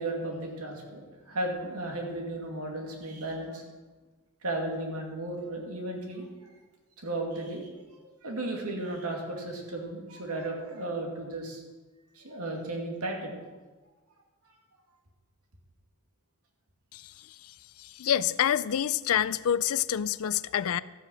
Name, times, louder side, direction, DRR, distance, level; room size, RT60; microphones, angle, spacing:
voice 1, 0.0-3.6 4.4-6.3 7.0-7.7 8.0-11.6 12.1-13.4 19.2-19.3, right 2 dB, 80° right, 1 dB, 2.4 m, -35 dB
voice 2, 17.8-20.8, left 10 dB, 70° left, 17 dB, 0.4 m, -27 dB
13.5 x 8.3 x 6.2 m, 1.3 s
head